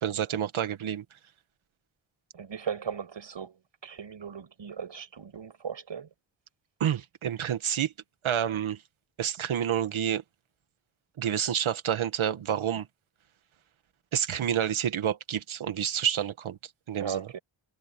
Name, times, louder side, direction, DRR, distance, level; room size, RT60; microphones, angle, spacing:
voice 1, 0.0-1.0 6.8-7.9 8.2-8.8 9.2-10.2 11.2-12.9 14.1-16.6 16.9-17.3, right 9 dB, 80° right, 2.0 m, -28 dB
voice 2, 2.3-3.6 3.8-6.1 17.0-17.4, right 7 dB, 65° right, 7.5 m, -37 dB
cardioid pair, 55°, 47 cm